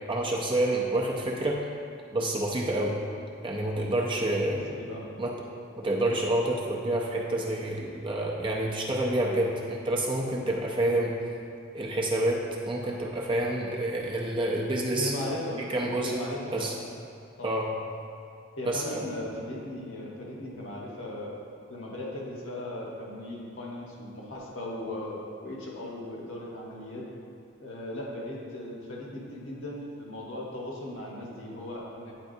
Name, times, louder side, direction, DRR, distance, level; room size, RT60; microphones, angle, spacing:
voice 1, 0.1-1.6 2.1-3.0 3.4-4.6 5.2-5.3 5.8-11.1 11.7-15.1 15.6-16.1 16.5-16.7 17.4-17.7 18.7-19.1, right 1 dB, 25° right, -2 dB, 0.5 m, -28 dB
voice 2, 4.5-5.0 14.9-15.6 16.0-16.8 17.4-17.5 18.6-21.3 21.7-27.0 27.6-32.1, left 1 dB, 60° left, -4 dB, 1.2 m, -37 dB
9.4 x 4.5 x 2.7 m, 2.5 s
head